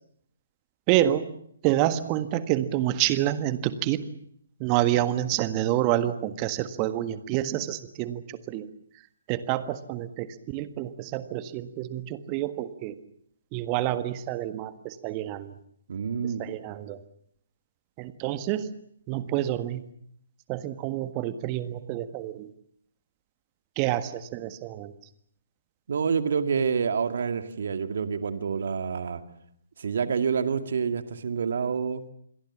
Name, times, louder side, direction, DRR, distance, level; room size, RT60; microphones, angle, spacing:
voice 1, 0.9-1.3 1.6-4.0 4.6-8.7 9.3-12.9 13.5-15.5 16.4-17.0 18.0-18.7 19.1-19.8 20.5-22.5 23.8-24.9, right 13 dB, 25° right, 12 dB, 1.6 m, -28 dB
voice 2, 15.9-16.5 25.9-29.2 29.8-32.0, right 6 dB, 55° right, 9 dB, 2.1 m, -27 dB
27.5 x 21.5 x 7.4 m, 0.69 s
figure-of-eight pair, 135°, 0 cm